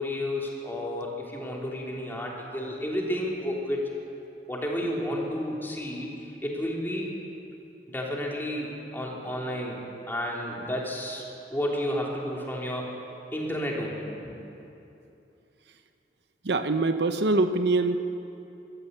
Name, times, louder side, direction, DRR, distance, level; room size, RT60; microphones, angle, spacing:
voice 1, 0.0-3.8 4.5-7.1 7.9-9.8 10.1-11.2 11.5-13.0 13.3-14.4, left 1 dB, 10° left, -2 dB, 3.2 m, -31 dB
voice 2, 16.4-18.0, right 2 dB, 70° right, 9 dB, 0.8 m, -24 dB
23.0 x 14.0 x 8.1 m, 2.8 s
head